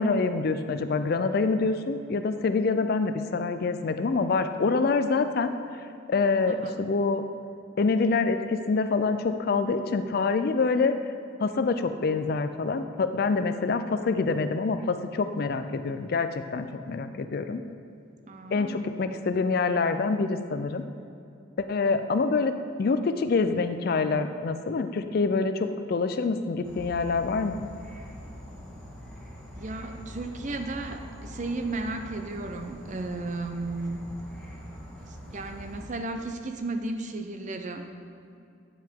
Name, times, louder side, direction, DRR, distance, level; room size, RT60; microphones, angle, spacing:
voice 1, 0.0-5.5 6.1-7.2 7.8-10.9 11.4-17.6 18.5-20.8 21.7-27.6, left 4 dB, 50° left, 9 dB, 0.4 m, -26 dB
voice 2, 6.5-6.8 18.3-18.9 29.6-34.1 35.3-37.9, right 2 dB, 35° right, 7 dB, 0.5 m, -34 dB
Insect / Frog, 26.6-35.8, equal, 5° left, 1.3 m, -43 dB
9.5 x 7.4 x 3.6 m, 2.5 s
head